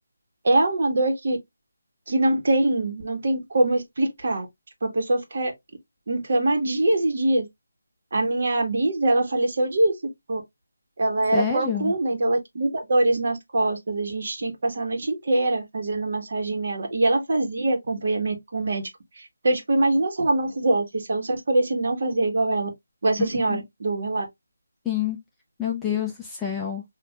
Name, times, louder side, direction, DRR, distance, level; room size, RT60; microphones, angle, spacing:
voice 1, 0.4-1.4 2.1-4.5 4.8-5.5 6.1-7.5 8.1-9.9 10.3-10.4 11.0-18.9 19.4-22.7 23.0-24.3, right 2 dB, 50° right, 1.3 m, -23 dB
voice 2, 11.3-11.9 23.2-23.6 24.8-25.2 25.6-26.8, left 9 dB, 5° left, 0.4 m, -28 dB
6.2 x 2.5 x 2.2 m
figure-of-eight pair, 170°, 0 cm